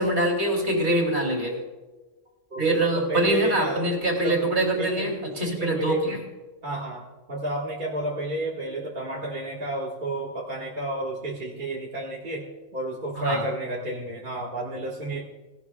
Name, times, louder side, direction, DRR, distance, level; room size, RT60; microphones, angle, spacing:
voice 1, 0.0-1.6 2.6-6.2 13.1-13.5, right 1 dB, 50° right, 0 dB, 3.1 m, -24 dB
voice 2, 2.5-3.9 4.2-4.4 4.8-5.1 5.4-6.2 6.6-7.0 7.3-12.4 12.7-15.2, right 1 dB, 35° right, -5 dB, 1.7 m, -31 dB
18.0 x 17.5 x 2.3 m, 1.2 s
omnidirectional pair, 1.4 m